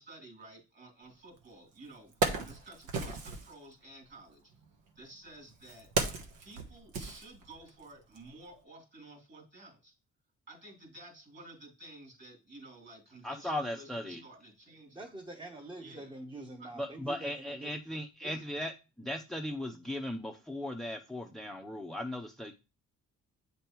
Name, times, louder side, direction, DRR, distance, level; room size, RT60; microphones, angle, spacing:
voice 1, 0.0-4.5 4.9-5.9 6.4-9.9 10.5-15.1 15.8-16.1 16.6-16.7 18.2-18.5, right 2 dB, 40° right, 3.0 m, -52 dB
Wood, 1.4-1.5 1.9-3.5 4.5-7.8 8.2-8.3, right 4 dB, 80° right, 1.2 m, -35 dB
voice 2, 13.2-14.2 16.7-18.7 19.0-22.5, left 1 dB, ahead, 0.6 m, -37 dB
voice 3, 14.9-17.8, right 2 dB, 15° right, 1.0 m, -45 dB
8.2 x 5.2 x 3.0 m
cardioid pair, 90°, 30 cm